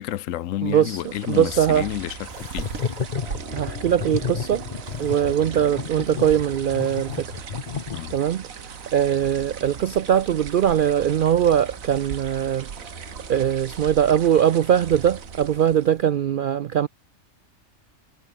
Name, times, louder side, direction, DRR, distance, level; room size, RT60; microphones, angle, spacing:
voice 1, 0.0-2.7 7.9-8.1, left 13 dB, 75° left, 1.0 m, -30 dB
voice 2, 0.6-1.0 1.3-1.9 3.5-4.6 5.0-7.3 8.1-8.5 8.9-12.9 13.3-16.9, right 9 dB, 70° right, 0.5 m, -21 dB
sound 1, 0.7-16.1, right 7 dB, 90° right, 1.7 m, -39 dB
sound 2, 1.5-16.0, right 2 dB, 50° right, 4.7 m, -43 dB
sound 3, 2.3-8.4, left 6 dB, 35° left, 0.8 m, -31 dB
omnidirectional pair, 1.4 m